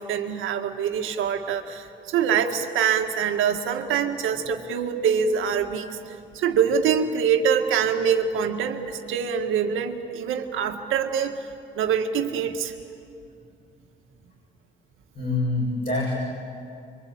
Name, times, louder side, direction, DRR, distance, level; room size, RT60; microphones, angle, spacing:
voice 1, 0.0-11.4 11.8-12.7, right 7 dB, 85° right, 5 dB, 1.8 m, -24 dB
voice 2, 15.1-16.2, left 2 dB, 40° left, -4 dB, 6.9 m, -25 dB
25.0 x 24.0 x 8.8 m, 2.6 s
cardioid pair, 90°, 20 cm